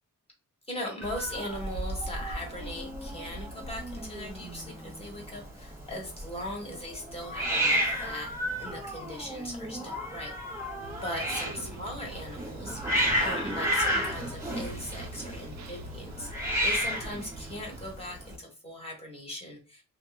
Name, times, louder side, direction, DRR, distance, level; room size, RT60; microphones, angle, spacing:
voice 1, 0.7-8.3 8.6-10.8 11.0-19.8, left 1 dB, 20° left, 0 dB, 1.3 m, -39 dB
Hiss, 1.0-18.3, equal, 10° right, 1.1 m, -33 dB
sound 1, 10.8-17.9, right 3 dB, 60° right, 0.6 m, -44 dB
2.9 x 2.2 x 3.4 m, 0.31 s
wide cardioid pair, 135°, 31 cm